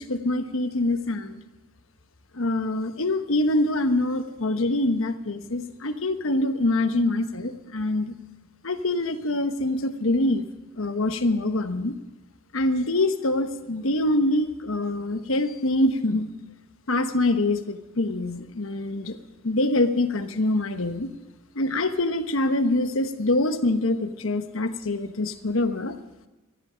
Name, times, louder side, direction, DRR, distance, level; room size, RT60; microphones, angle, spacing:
voice 1, 0.0-1.4 2.3-8.2 8.6-10.4 10.8-11.9 12.5-16.3 16.9-21.1 21.5-26.0, left 2 dB, 80° left, 9 dB, 1.2 m, -25 dB
20.5 x 13.5 x 5.1 m, 1.1 s
head